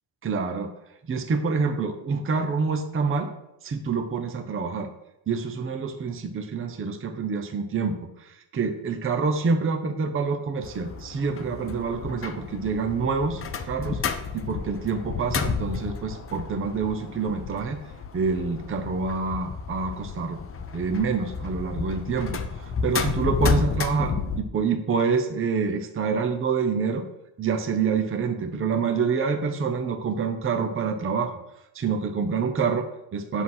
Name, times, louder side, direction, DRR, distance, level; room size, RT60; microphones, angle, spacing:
voice 1, 0.2-0.7 1.0-3.3 3.6-4.9 5.3-13.4 13.7-17.8 18.1-20.4 20.7-27.0 27.4-31.4 31.7-33.4, right 5 dB, 25° right, 6 dB, 0.8 m, -27 dB
sound 1, 10.6-24.4, left 5 dB, 25° left, 0.7 m, -31 dB
8.3 x 6.3 x 5.6 m, 0.86 s
cardioid pair, 135°, 50 cm